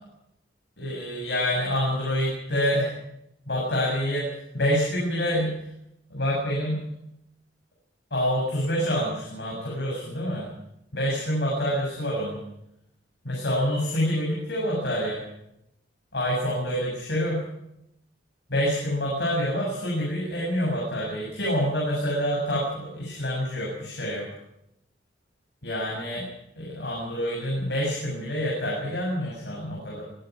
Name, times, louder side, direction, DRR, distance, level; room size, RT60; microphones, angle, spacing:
voice 1, 0.8-2.9 3.5-5.7 6.1-6.8 8.1-10.5 10.9-12.4 13.2-15.2 16.1-17.4 18.5-24.3 25.6-26.3 26.6-30.0, equal, 65° left, -3 dB, 7.5 m, -27 dB
24.5 x 11.5 x 9.5 m, 0.81 s
head